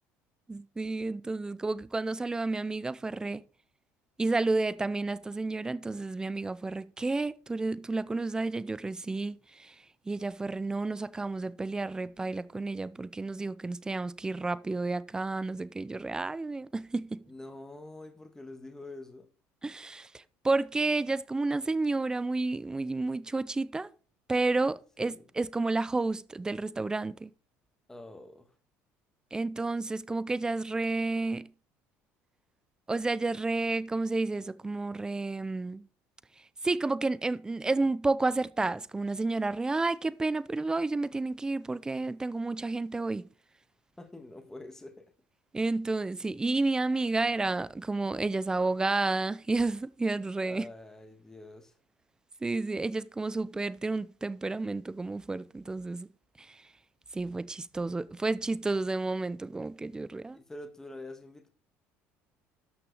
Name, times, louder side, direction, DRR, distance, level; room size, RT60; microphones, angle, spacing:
voice 1, 0.5-3.4 4.2-9.7 10.1-17.2 19.6-23.9 24.3-27.3 29.3-31.5 32.9-35.8 36.6-43.3 45.5-50.7 52.4-56.1 56.4-56.6 57.1-60.4, right 3 dB, 15° right, 0.6 m, -31 dB
voice 2, 17.2-19.3 25.0-25.3 27.9-28.6 44.0-45.1 50.4-51.8 60.3-61.5, left 2 dB, 10° left, 1.7 m, -46 dB
12.5 x 6.1 x 4.9 m
cardioid pair, 120°, 5 cm